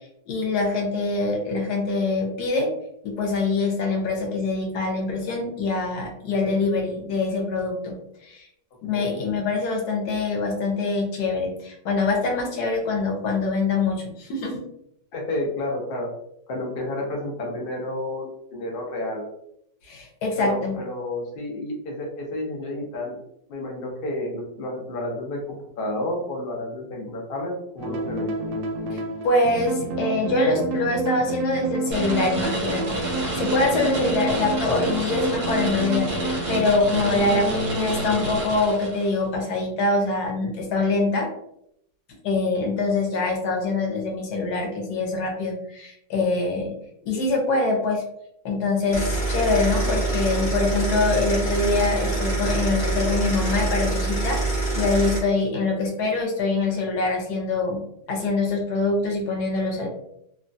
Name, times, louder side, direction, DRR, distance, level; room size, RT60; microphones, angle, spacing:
voice 1, 0.3-2.7 3.0-8.5 8.8-14.6 19.8-20.8 28.9-29.0 29.2-41.3 42.2-46.8 47.0-48.0 48.4-57.8 58.1-59.9, left 3 dB, 65° left, 1 dB, 1.2 m, -24 dB
voice 2, 8.9-9.2 15.1-16.1 16.5-19.3 20.4-23.2 23.5-28.4 33.9-34.1, left 1 dB, 85° left, -1 dB, 0.4 m, -31 dB
sound 1, 27.8-38.4, right 3 dB, 70° right, 1.0 m, -29 dB
sound 2, 31.9-39.2, right 1 dB, 50° right, 0.6 m, -30 dB
sound 3, 48.9-55.2, right 2 dB, 35° left, 0.6 m, -25 dB
3.0 x 2.2 x 2.5 m, 0.76 s
omnidirectional pair, 2.0 m